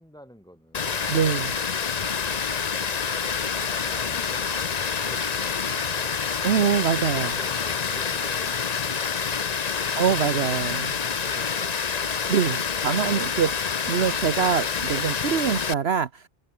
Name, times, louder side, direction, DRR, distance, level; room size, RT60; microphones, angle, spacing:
voice 1, 0.0-1.9, equal, 5° left, 5.7 m, -50 dB
Water, 0.7-15.7, left 6 dB, 40° left, 0.8 m, -27 dB
voice 2, 1.1-1.5 6.4-7.4 9.9-11.0 12.3-16.3, right 8 dB, 60° right, 1.2 m, -24 dB
omnidirectional pair, 1.2 m